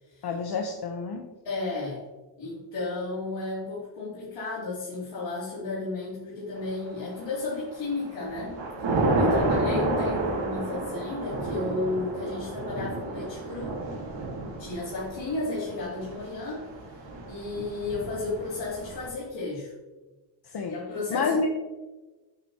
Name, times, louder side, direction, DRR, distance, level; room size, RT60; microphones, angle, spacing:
voice 1, 0.2-1.2 20.5-20.8 21.1-21.5, left 4 dB, 60° left, 2 dB, 1.0 m, -29 dB
voice 2, 1.4-2.0 2.4-8.6 8.9-13.8 14.6-17.0 17.3-19.7 20.7-21.5, left 3 dB, 85° left, -10 dB, 3.2 m, -33 dB
Thunder / Rain, 7.0-7.5 8.0-19.1, right 2 dB, 85° right, 1.9 m, -30 dB
9.9 x 8.0 x 2.9 m, 1.2 s
cardioid pair, 105°, 44 cm